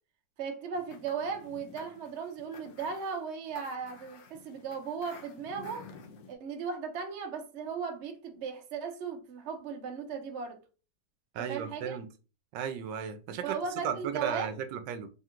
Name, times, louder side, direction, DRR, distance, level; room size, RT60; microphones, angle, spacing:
voice 1, 0.4-5.9 6.3-10.6 11.4-12.0 13.4-14.5, right 6 dB, 55° right, 0.8 m, -37 dB
sound 1, 0.7-6.3, left 5 dB, 85° left, 1.5 m, -52 dB
voice 2, 11.3-12.1 12.5-13.6 13.8-15.1, right 8 dB, 80° right, 1.2 m, -35 dB
3.5 x 2.4 x 4.2 m
omnidirectional pair, 1.9 m